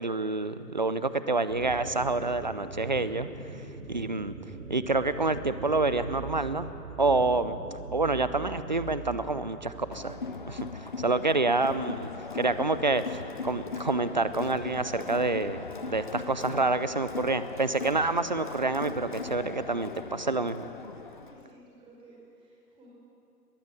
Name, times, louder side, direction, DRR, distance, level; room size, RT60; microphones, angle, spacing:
voice 1, 0.0-3.3 3.9-4.3 4.7-6.7 7.0-7.6 7.9-10.2 10.5-20.7, right 3 dB, 30° right, 14 dB, 0.5 m, -28 dB
sound 1, 1.5-10.8, right 4 dB, 55° right, 2.6 m, -42 dB
Crowd, 9.9-21.5, left 4 dB, 30° left, 0.6 m, -39 dB
voice 2, 21.1-22.9, right 1 dB, 10° right, -4 dB, 5.1 m, -55 dB
22.0 x 14.5 x 8.6 m, 2.7 s
figure-of-eight pair, 145°, 49 cm